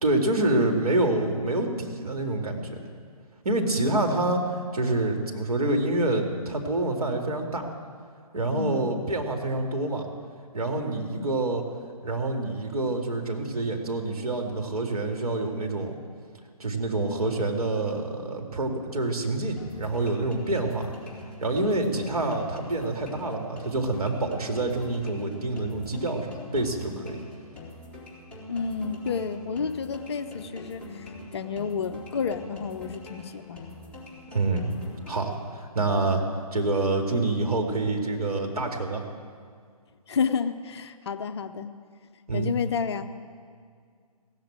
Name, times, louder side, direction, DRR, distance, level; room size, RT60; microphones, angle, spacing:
voice 1, 0.0-2.8 3.4-7.7 8.3-10.1 10.5-11.6 12.0-16.0 16.6-20.9 21.4-27.2 34.3-34.7 35.1-36.2 36.5-39.0 42.3-42.5, right 2 dB, 70° right, 2 dB, 2.4 m, -27 dB
voice 2, 8.5-9.0 11.2-11.4 28.5-33.6 36.0-36.2 40.1-41.7 42.3-43.1, left 6 dB, 45° left, 9 dB, 0.7 m, -30 dB
sound 1, 19.6-35.6, left 2 dB, 5° left, 3.6 m, -44 dB
16.5 x 7.8 x 9.0 m, 2.1 s
figure-of-eight pair, 140°, 20 cm